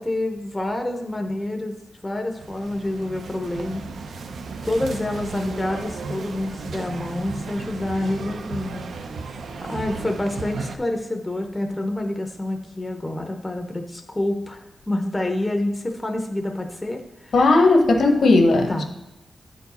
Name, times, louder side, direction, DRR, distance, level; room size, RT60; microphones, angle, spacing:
voice 1, 0.0-1.7 2.0-4.2 4.6-8.9 9.6-17.3 18.7-18.9, left 1 dB, 15° left, 3 dB, 0.6 m, -27 dB
sound 1, 2.4-10.8, right 4 dB, 75° right, 0.5 m, -34 dB
voice 2, 17.3-18.9, left 2 dB, 65° left, 4 dB, 1.0 m, -16 dB
9.4 x 4.6 x 4.1 m, 0.98 s
wide cardioid pair, 180°, 0 cm